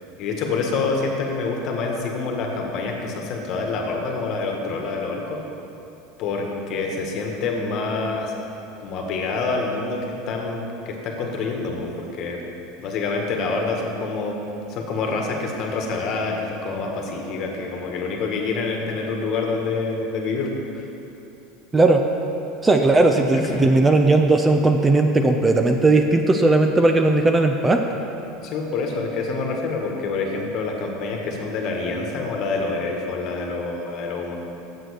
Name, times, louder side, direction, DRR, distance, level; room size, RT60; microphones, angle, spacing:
voice 1, 0.2-5.4 6.2-8.3 8.8-12.4 12.8-14.4 14.7-20.9 23.3-23.6 28.4-34.3, left 3 dB, 45° left, 1 dB, 1.5 m, -27 dB
voice 2, 22.6-27.8, right 2 dB, 15° right, 5 dB, 0.5 m, -17 dB
7.9 x 7.5 x 6.4 m, 2.9 s
supercardioid pair, 140°, 0 cm